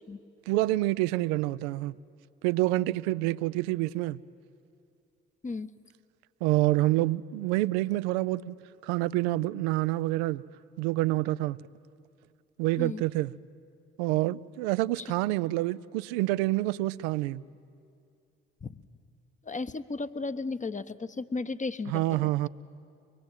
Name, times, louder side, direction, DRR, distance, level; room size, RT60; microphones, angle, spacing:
voice 1, 0.5-1.9 2.4-4.2 6.4-8.5 8.8-10.4 10.8-11.6 12.6-13.3 14.0-17.4 21.9-22.5, right 18 dB, 80° right, 0.5 m, -27 dB
voice 2, 19.4-22.5, left 3 dB, 25° left, 0.9 m, -35 dB
24.0 x 20.5 x 9.0 m
hypercardioid pair, 45°, 32 cm